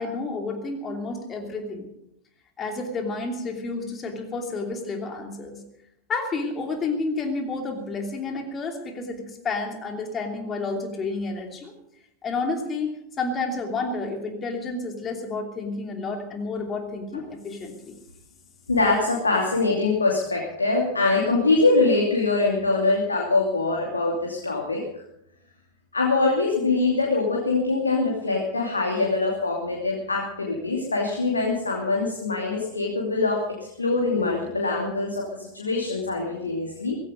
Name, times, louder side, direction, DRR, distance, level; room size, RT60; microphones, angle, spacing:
voice 1, 0.0-1.9 2.6-5.6 6.1-11.7 12.2-17.9, left 3 dB, 25° left, 3 dB, 2.9 m, -30 dB
voice 2, 18.7-24.8 25.9-33.5 33.8-37.0, left 3 dB, 75° left, -1 dB, 2.7 m, -23 dB
17.0 x 16.0 x 5.2 m, 0.81 s
figure-of-eight pair, 90°, 0 cm